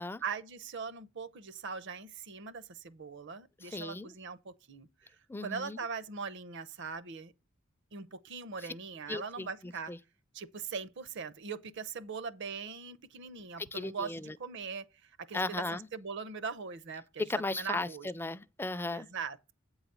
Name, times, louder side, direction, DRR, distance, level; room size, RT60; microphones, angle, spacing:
voice 1, 0.2-4.9 5.4-7.3 7.9-9.9 10.3-14.1 14.4-17.2 17.5-18.1 18.9-19.5, right 5 dB, 60° right, 0.7 m, -41 dB
voice 2, 3.6-4.1 5.3-5.8 8.6-8.7 9.1-10.0 13.6-14.4 15.3-15.9 17.2-19.1, left 2 dB, 10° left, 0.3 m, -36 dB
8.6 x 4.0 x 6.8 m
head